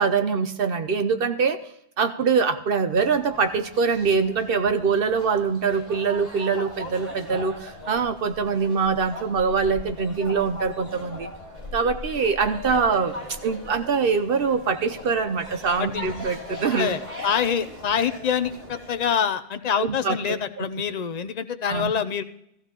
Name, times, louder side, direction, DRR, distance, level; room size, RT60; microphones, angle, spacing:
voice 1, 0.0-1.6 2.0-11.3 11.7-17.0 19.8-20.7 21.7-21.9, right 5 dB, 60° right, 9 dB, 0.8 m, -24 dB
sound 1, 2.9-19.1, left 1 dB, 35° right, 4.5 m, -39 dB
voice 2, 16.7-22.2, left 7 dB, 45° left, 10 dB, 0.6 m, -26 dB
15.0 x 15.0 x 2.9 m, 0.76 s
omnidirectional pair, 1.1 m